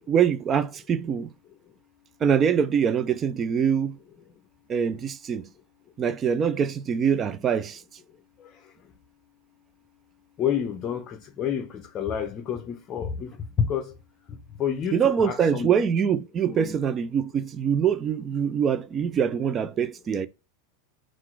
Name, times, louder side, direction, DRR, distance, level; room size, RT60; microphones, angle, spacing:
voice 1, 0.1-1.3 2.2-4.0 4.7-5.5 6.0-7.8 14.9-20.3, right 7 dB, 30° right, 0.4 m, -24 dB
voice 2, 10.4-13.3 13.6-13.8 14.6-15.7 16.5-16.8, left 8 dB, 35° left, 0.6 m, -29 dB
4.0 x 2.5 x 4.5 m
supercardioid pair, 120°, 0 cm